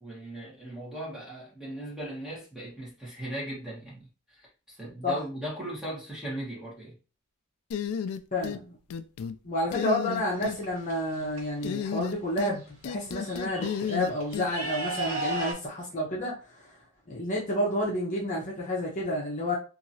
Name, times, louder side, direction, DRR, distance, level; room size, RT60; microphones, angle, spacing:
voice 1, 0.0-4.1 4.7-6.9, right 1 dB, 5° right, -6 dB, 1.3 m, -38 dB
sound 1, 7.7-8.6 8.9-9.4 9.7-10.6 11.6-12.6 12.8-14.5, left 7 dB, 85° left, 0.3 m, -32 dB
voice 2, 8.3-8.8 9.4-16.4 17.1-19.6, left 1 dB, 35° left, -4 dB, 0.8 m, -30 dB
sound 2, 10.3-11.4 12.6-12.7 13.0-15.5, right 2 dB, 65° right, 1.2 m, -36 dB
2.8 x 2.7 x 2.7 m, 0.34 s
head